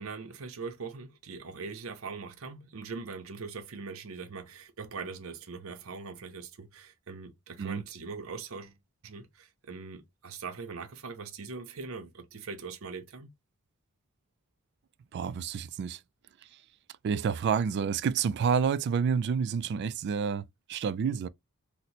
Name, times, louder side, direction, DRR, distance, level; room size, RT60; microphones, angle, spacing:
voice 1, 0.0-8.8 9.0-13.3, right 4 dB, 75° right, 0.6 m, -41 dB
voice 2, 15.1-16.0 17.0-21.3, right 6 dB, 55° right, 0.3 m, -29 dB
4.1 x 2.1 x 2.7 m
head